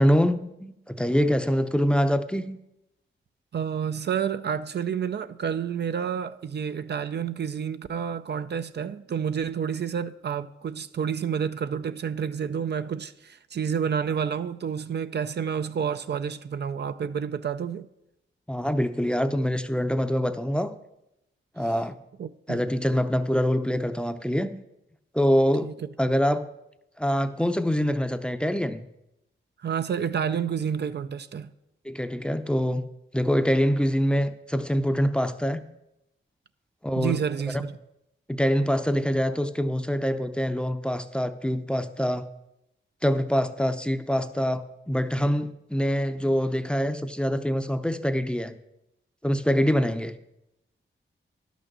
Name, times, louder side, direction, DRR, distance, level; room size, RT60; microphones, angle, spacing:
voice 1, 0.0-2.6 18.5-20.7 21.6-22.0 22.5-24.6 25.1-25.7 26.0-26.4 27.0-28.8 31.8-32.8 33.1-35.6 36.8-37.2 38.3-42.2 43.0-48.6 49.2-50.2, equal, 5° left, 0.6 m, -25 dB
voice 2, 3.5-17.9 22.2-22.6 25.6-25.7 29.6-31.5 37.0-37.7, right 7 dB, 55° right, 0.4 m, -29 dB
11.5 x 6.3 x 6.7 m
wide cardioid pair, 90°, 20 cm